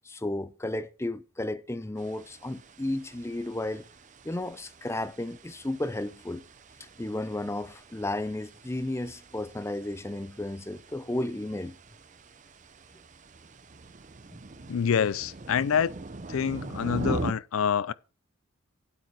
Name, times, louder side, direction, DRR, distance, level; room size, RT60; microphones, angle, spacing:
voice 1, 0.0-3.9 4.2-6.4 7.0-11.8, left 1 dB, 10° left, 0.5 m, -33 dB
sound 1, 2.0-17.3, right 2 dB, 35° right, 0.6 m, -42 dB
voice 2, 14.7-15.9 16.3-17.9, left 7 dB, 70° left, 0.4 m, -26 dB
9.0 x 8.3 x 4.7 m
head